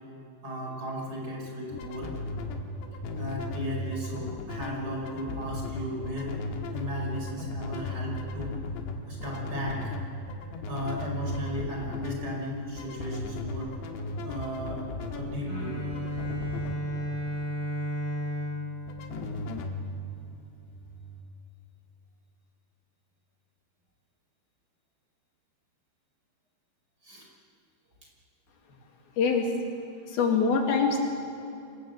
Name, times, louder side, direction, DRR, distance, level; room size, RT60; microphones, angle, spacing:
voice 1, 0.4-2.1 3.2-6.3 6.7-8.6 9.1-9.9 10.7-13.8 14.2-15.8 27.0-27.3, equal, 25° right, -1 dB, 5.5 m, -35 dB
sound 1, 1.7-21.2, left 2 dB, 90° left, 3.8 m, -37 dB
Bowed string instrument, 15.4-20.3, equal, 50° right, 8.7 m, -34 dB
voice 2, 29.2-29.5 30.1-31.0, left 5 dB, 65° left, 1 dB, 4.2 m, -24 dB
25.5 x 19.5 x 7.9 m, 2.8 s
omnidirectional pair, 4.8 m